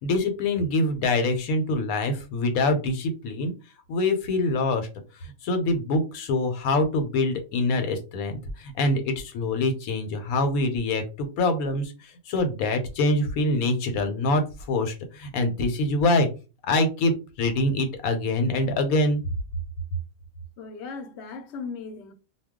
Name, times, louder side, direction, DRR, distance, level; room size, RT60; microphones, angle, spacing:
voice 1, 0.0-3.5 3.9-4.9 5.2-16.3 16.6-19.2, left 2 dB, 90° left, 1.1 m, -25 dB
voice 2, 20.6-22.1, left 4 dB, 60° left, 0.8 m, -37 dB
2.3 x 2.2 x 3.5 m
omnidirectional pair, 1.5 m